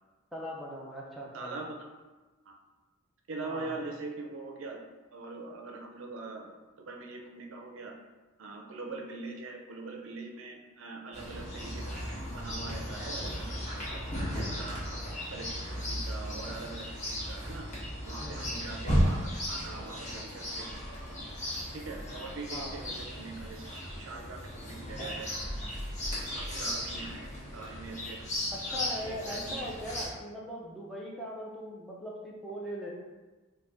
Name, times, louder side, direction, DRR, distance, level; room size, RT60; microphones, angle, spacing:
voice 1, 0.3-1.5 3.4-3.7 18.2-18.5 22.5-22.8 28.5-32.9, equal, ahead, -4 dB, 0.4 m, -40 dB
voice 2, 1.3-1.8 2.5-2.6 3.3-4.8 5.1-7.9 8.4-14.8 15.3-17.7 18.0-20.8 21.7-25.3 26.3-28.2 28.7-29.8, right 3 dB, 65° right, 2 dB, 0.5 m, -43 dB
Chirp tweet, 11.1-30.1, equal, 35° left, 1.0 m, -35 dB
3.8 x 2.2 x 3.4 m, 1.2 s
head